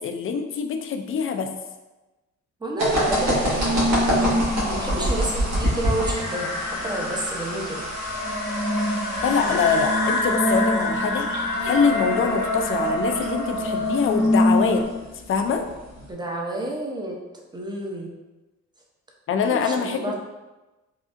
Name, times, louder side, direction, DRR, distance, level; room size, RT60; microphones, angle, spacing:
voice 1, 0.0-1.5 9.2-11.3 11.6-14.8 15.3-15.6 19.3-20.1, left 6 dB, 45° left, 6 dB, 0.4 m, -24 dB
voice 2, 2.6-6.6 6.8-7.8 9.4-9.6 16.1-17.2 17.5-18.1 19.5-20.1, right 2 dB, 15° right, -1 dB, 0.6 m, -30 dB
sound 1, 2.8-16.1, equal, 60° right, 1.3 m, -29 dB
sound 2, 2.9-14.8, left 1 dB, 75° left, 1.1 m, -25 dB
3.7 x 2.4 x 2.5 m, 1.1 s
cardioid pair, 90°, 30 cm